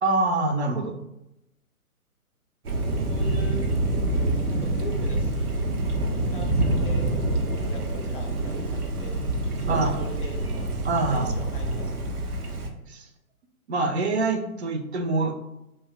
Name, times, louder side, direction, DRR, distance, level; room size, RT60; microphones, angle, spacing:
voice 1, 0.0-0.9 9.7-10.0 10.8-11.3 12.9-13.1 13.7-15.3, right 3 dB, 50° right, 4 dB, 0.5 m, -25 dB
Thunder, 2.6-12.7, right 2 dB, 90° right, 0.6 m, -26 dB
voice 2, 2.8-3.7 4.5-5.7 6.1-7.1 7.7-9.3 9.6-10.5 11.1-12.1, left 2 dB, 40° left, 2 dB, 0.4 m, -41 dB
2.5 x 2.1 x 3.4 m, 0.89 s
figure-of-eight pair, 130°, 44 cm